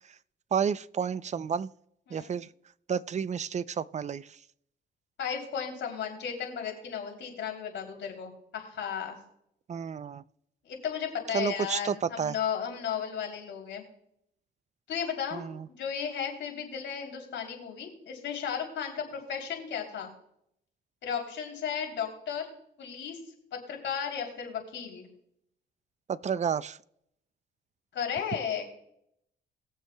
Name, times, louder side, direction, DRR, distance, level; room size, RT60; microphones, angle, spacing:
voice 1, 0.5-1.7 2.1-2.5 2.9-4.4 9.7-10.2 11.3-12.4 15.3-15.7 26.1-26.8, right 7 dB, 35° right, 0.5 m, -31 dB
voice 2, 5.2-9.2 10.6-13.8 14.9-20.1 21.0-22.5 22.8-23.2 23.5-25.1 27.9-28.6, left 7 dB, 70° left, 3.2 m, -34 dB
20.5 x 7.2 x 2.2 m
cardioid pair, 90°, 20 cm